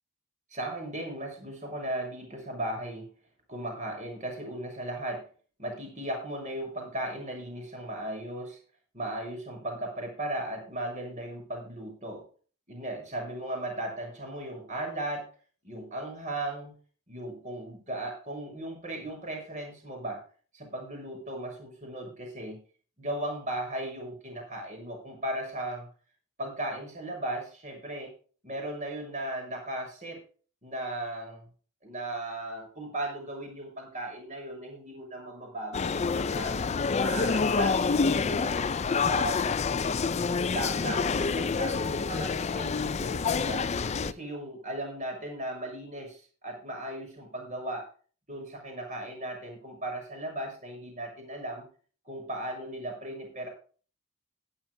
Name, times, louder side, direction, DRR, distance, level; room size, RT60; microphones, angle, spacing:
voice 1, 0.5-3.1 3.5-5.3 5.6-8.6 8.9-12.2 12.7-15.3 15.6-16.8 17.1-20.2 20.5-22.6 23.0-25.9 26.4-28.1 28.4-30.2 30.6-31.4 31.8-36.6 36.9-38.6 39.0-39.7 40.4-43.7 44.0-47.9 48.3-51.7 52.0-53.5, right 1 dB, 35° right, 2 dB, 6.9 m, -36 dB
sound 1, 35.7-44.1, left 5 dB, 30° left, 0.4 m, -27 dB
17.5 x 11.5 x 2.3 m, 0.39 s
head